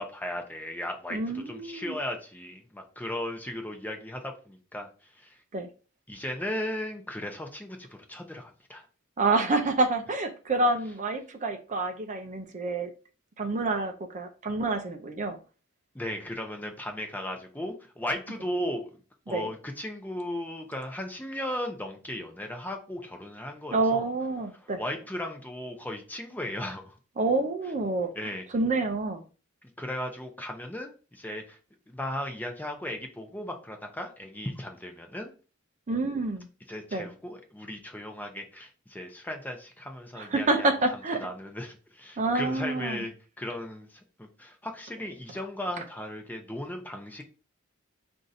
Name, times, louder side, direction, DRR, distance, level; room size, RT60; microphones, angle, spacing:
voice 1, 0.0-5.4 6.1-8.8 15.9-19.0 19.3-24.0 24.5-27.0 28.2-28.4 29.6-31.6 31.9-35.3 36.7-47.2, left 1 dB, 10° left, 0.6 m, -36 dB
voice 2, 1.1-1.9 5.5-5.7 9.2-12.9 13.4-15.4 19.3-19.5 23.7-24.8 27.2-28.1 28.5-29.2 35.9-36.5 36.9-37.1 40.2-41.2 42.2-43.0, right 2 dB, 35° right, 0.5 m, -28 dB
4.5 x 2.6 x 4.0 m
head